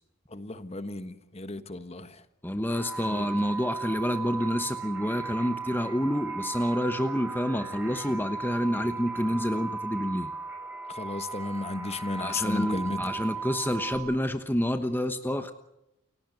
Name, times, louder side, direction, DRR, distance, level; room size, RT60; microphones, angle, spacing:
voice 1, 0.3-2.2 3.0-3.3 10.9-13.1, left 2 dB, 30° left, 1.4 m, -34 dB
voice 2, 2.4-10.3 12.2-15.5, equal, 10° left, 1.1 m, -28 dB
sound 1, 2.7-14.0, right 4 dB, 10° right, 6.1 m, -36 dB
29.5 x 17.0 x 8.1 m
head